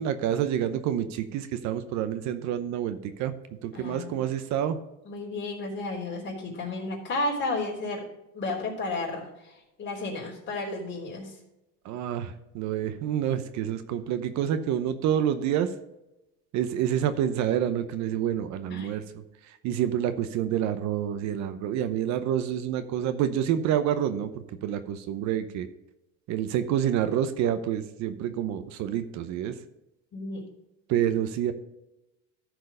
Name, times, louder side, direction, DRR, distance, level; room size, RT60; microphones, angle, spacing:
voice 1, 0.0-4.8 11.8-15.7 16.5-19.0 19.4-25.7 26.3-29.5 30.9-31.5, right 10 dB, 60° right, 11 dB, 0.8 m, -28 dB
voice 2, 3.7-4.2 5.1-8.1 8.3-11.3 18.7-19.0 30.1-30.5, left 2 dB, 35° left, -2 dB, 3.4 m, -33 dB
13.5 x 4.7 x 5.0 m, 0.94 s
cardioid pair, 135°, 33 cm